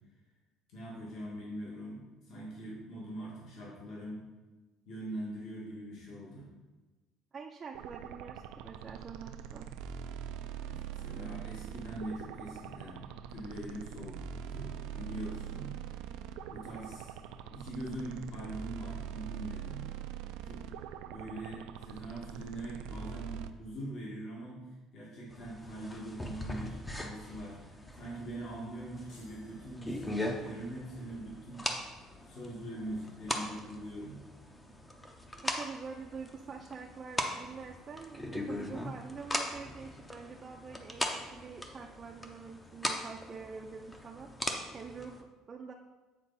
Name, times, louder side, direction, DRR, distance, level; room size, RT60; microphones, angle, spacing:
voice 1, 0.7-4.3 4.9-6.5 10.7-15.7 16.5-17.1 17.5-19.9 20.4-20.7 21.1-24.6 24.9-31.6 32.3-34.2, right 1 dB, 55° left, -4 dB, 1.9 m, -43 dB
voice 2, 7.3-9.7 35.4-44.3 44.7-45.7, right 5 dB, 25° right, 0 dB, 0.5 m, -46 dB
sound 1, 7.7-23.5, right 9 dB, 80° right, 0.4 m, -43 dB
sound 2, 25.3-45.2, left 1 dB, 10° left, 0.7 m, -40 dB
sound 3, 29.1-30.6, left 2 dB, 80° left, 1.8 m, -62 dB
8.3 x 4.4 x 4.1 m, 1.2 s
cardioid pair, 140°, 0 cm